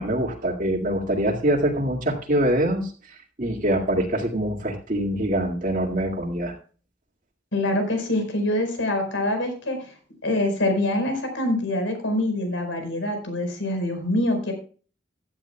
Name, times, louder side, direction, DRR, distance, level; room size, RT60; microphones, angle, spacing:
voice 1, 0.0-2.9 3.4-6.5, right 1 dB, 45° right, -1 dB, 2.2 m, -24 dB
voice 2, 7.5-9.8 10.2-14.5, left 1 dB, 80° left, 5 dB, 4.7 m, -25 dB
16.0 x 12.0 x 2.3 m, 0.39 s
head